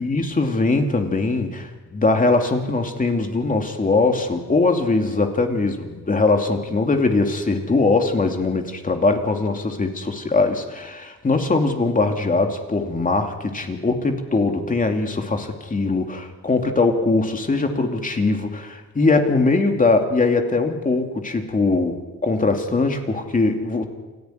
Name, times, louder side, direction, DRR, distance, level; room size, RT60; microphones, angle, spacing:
voice 1, 0.0-23.8, left 3 dB, 25° left, 4 dB, 2.8 m, -21 dB
28.5 x 11.0 x 9.5 m, 1.2 s
cardioid pair, 90°, 30 cm